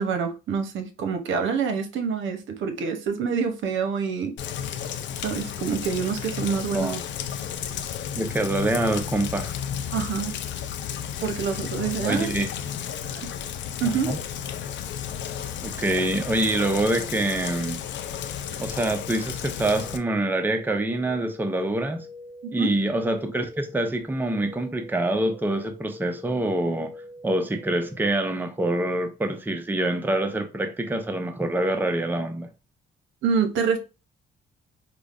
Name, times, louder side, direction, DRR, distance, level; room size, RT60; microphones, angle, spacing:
voice 1, 0.0-4.3 5.2-7.0 9.9-10.3 11.2-12.3 13.1-13.3 13.8-14.1 22.4-22.7 33.2-33.8, right 6 dB, 75° right, 0.7 m, -26 dB
Rain, 4.4-20.0, left 9 dB, 65° left, 0.5 m, -33 dB
voice 2, 8.2-9.6 12.0-12.5 13.8-14.2 15.6-17.8 18.6-22.1 22.5-26.9 27.2-32.5, right 1 dB, 10° right, 0.5 m, -25 dB
sound 1, 18.4-28.0, left 1 dB, 20° left, 0.9 m, -46 dB
4.9 x 2.0 x 2.4 m
cardioid pair, 90°, 20 cm